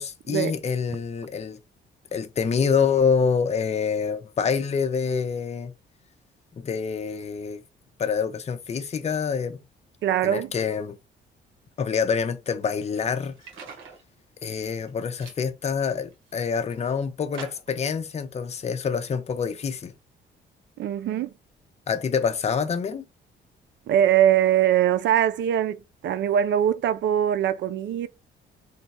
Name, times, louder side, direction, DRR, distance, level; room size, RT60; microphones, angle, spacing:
voice 1, 0.0-1.6 2.1-5.7 6.6-7.6 8.0-9.6 10.2-11.0 11.8-13.3 14.4-19.9 21.9-23.0, left 6 dB, 35° left, 0.6 m, -26 dB
voice 2, 10.0-10.5 20.8-21.3 23.9-28.1, right 10 dB, 65° right, 0.4 m, -22 dB
sound 1, 12.9-14.0 14.5-14.9 15.2-15.4 16.0-16.8 17.3-17.8, right 5 dB, 80° right, 1.3 m, -44 dB
3.3 x 2.2 x 4.1 m
cardioid pair, 90°, 20 cm